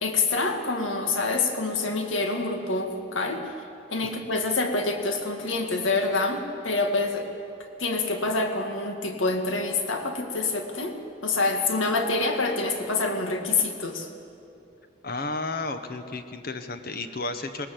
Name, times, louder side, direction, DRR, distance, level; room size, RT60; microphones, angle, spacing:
voice 1, 0.0-3.5 3.9-7.3 7.8-14.1, left 3 dB, 80° left, 5 dB, 2.0 m, -26 dB
voice 2, 15.0-17.7, left 3 dB, 50° left, 8 dB, 1.1 m, -32 dB
19.5 x 19.5 x 7.6 m, 2.6 s
head